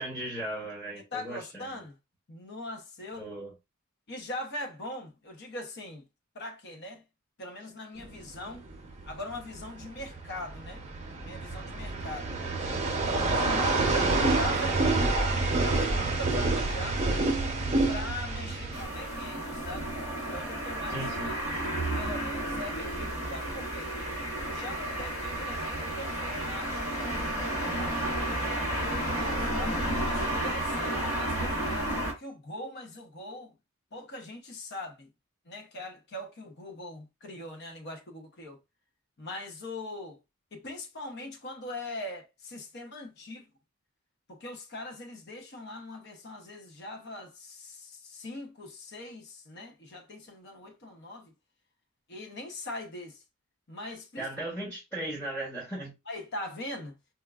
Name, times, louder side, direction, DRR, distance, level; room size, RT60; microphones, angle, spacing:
voice 1, 0.0-1.8 3.2-3.5 20.9-21.3 54.2-55.9, right 1 dB, 10° left, 0.9 m, -37 dB
voice 2, 1.1-1.9 2.3-3.3 4.1-6.0 6.3-7.0 7.4-8.6 9.1-10.8 11.2-12.3 13.3-15.1 15.6-17.2 17.9-20.0 20.3-21.4 21.9-23.9 24.5-27.0 27.6-28.0 28.8-29.8 30.1-33.5 33.9-35.1 35.5-38.6 39.2-40.2 40.5-43.5 44.3-51.3 52.1-53.2 53.7-54.3 56.1-56.9, left 1 dB, 50° left, 0.7 m, -41 dB
sound 1, 8.0-18.8, right 2 dB, 30° right, 0.6 m, -28 dB
sound 2, 18.7-32.1, right 1 dB, 70° left, 1.7 m, -32 dB
4.3 x 2.3 x 2.3 m
head